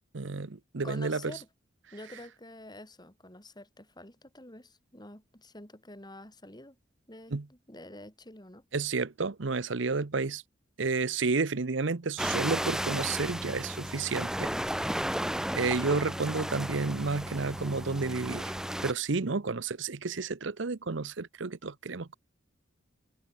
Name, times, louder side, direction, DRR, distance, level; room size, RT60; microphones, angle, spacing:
voice 1, 0.1-1.3 7.3-7.5 8.7-10.4 10.8-14.5 15.5-18.5 18.8-22.2, right 4 dB, 65° right, 0.8 m, -31 dB
voice 2, 0.8-1.5 1.9-6.8 7.1-8.6, left 1 dB, 20° left, 7.6 m, -48 dB
sound 1, 12.2-18.9, equal, 5° right, 0.7 m, -34 dB
head